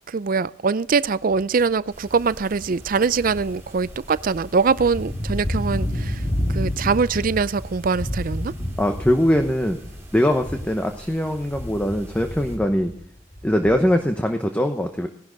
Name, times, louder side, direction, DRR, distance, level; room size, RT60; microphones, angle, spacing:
voice 1, 0.1-8.5, right 5 dB, 45° right, 0.4 m, -23 dB
sound 1, 1.3-1.6 2.1-10.9 11.2-14.1, left 1 dB, 25° left, 2.0 m, -30 dB
sound 2, 1.9-12.6, right 1 dB, 10° right, 3.7 m, -45 dB
voice 2, 8.8-9.8 10.1-12.9 13.4-15.1, equal, 5° left, 0.8 m, -21 dB
18.0 x 11.5 x 3.9 m
head